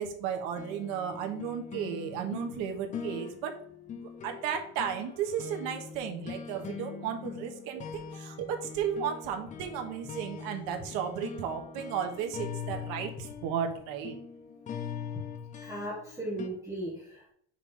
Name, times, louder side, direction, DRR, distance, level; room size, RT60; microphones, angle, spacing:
voice 1, 0.0-3.6 3.9-14.2, right 8 dB, 80° right, 4 dB, 1.2 m, -34 dB
sound 1, 0.6-16.5, left 6 dB, 20° left, 0.5 m, -42 dB
voice 2, 15.6-17.3, right 1 dB, 10° right, -6 dB, 1.2 m, -37 dB
5.6 x 3.2 x 5.4 m, 0.64 s
cardioid pair, 170°, 35 cm